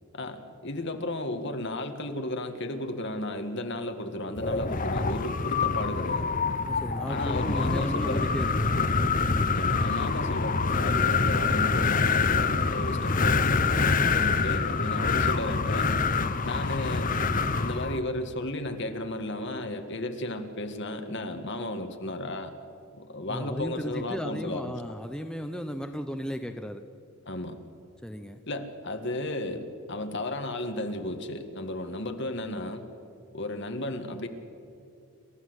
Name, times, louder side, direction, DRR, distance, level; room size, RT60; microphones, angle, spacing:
voice 1, 0.1-6.4 7.1-8.3 9.5-16.0 16.4-22.5 22.9-24.8 27.3-27.6 28.5-32.9 33.3-34.3, left 1 dB, 50° left, 7 dB, 1.7 m, -34 dB
Wind, 4.4-18.0, left 4 dB, 35° left, 0.8 m, -26 dB
voice 2, 6.6-8.7 14.1-14.4 23.3-26.9 28.0-28.4, equal, 5° left, 6 dB, 0.7 m, -35 dB
28.0 x 13.5 x 8.0 m, 2.6 s
head